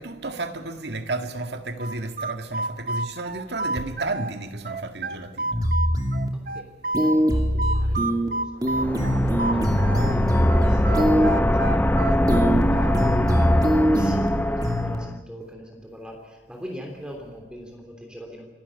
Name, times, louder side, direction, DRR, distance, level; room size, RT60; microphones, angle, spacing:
voice 1, 0.0-5.6, right 2 dB, 70° right, 1.9 m, -32 dB
sound 1, 1.8-4.3 4.6-7.2 7.6-10.2 10.5-13.1, right 2 dB, 50° right, 0.8 m, -30 dB
sound 2, 5.5-6.3 6.9-8.3 8.6-11.3 12.3-12.6 12.9-14.3 14.6-15.0, equal, 20° right, 2.4 m, -22 dB
voice 2, 6.5-12.2 12.7-18.5, equal, 5° right, 3.3 m, -40 dB
sound 3, 8.6-15.1, left 1 dB, 10° left, 0.6 m, -23 dB
26.5 x 12.0 x 9.9 m
head